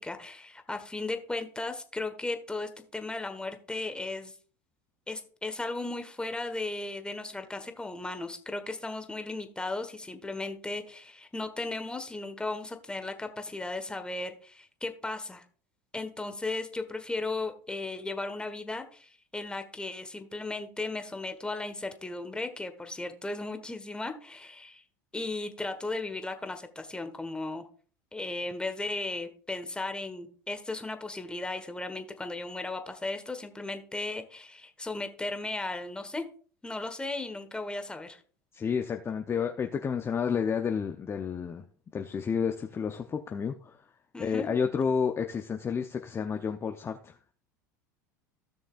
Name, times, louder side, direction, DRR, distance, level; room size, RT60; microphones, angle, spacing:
voice 1, 0.0-4.3 5.1-15.4 15.9-24.8 25.1-27.7 28.1-36.2 36.6-38.2 44.1-44.5, left 2 dB, 10° left, 7 dB, 1.4 m, -36 dB
voice 2, 38.5-41.7 41.9-43.9 44.2-47.2, left 6 dB, 25° left, 5 dB, 0.7 m, -30 dB
16.0 x 6.3 x 2.5 m, 0.42 s
hypercardioid pair, 85°, 10 cm